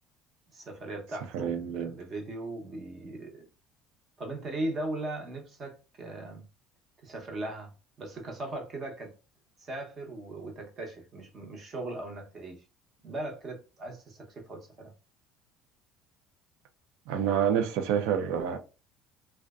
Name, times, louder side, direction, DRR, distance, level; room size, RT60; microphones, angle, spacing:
voice 1, 0.5-3.5 4.2-6.4 7.0-9.1 9.6-12.6 13.0-14.9, right 2 dB, 35° right, 0.7 m, -38 dB
voice 2, 1.3-1.9 17.1-18.6, right 8 dB, 75° right, 0.4 m, -28 dB
2.5 x 2.1 x 2.3 m
cardioid pair, 135°, 0 cm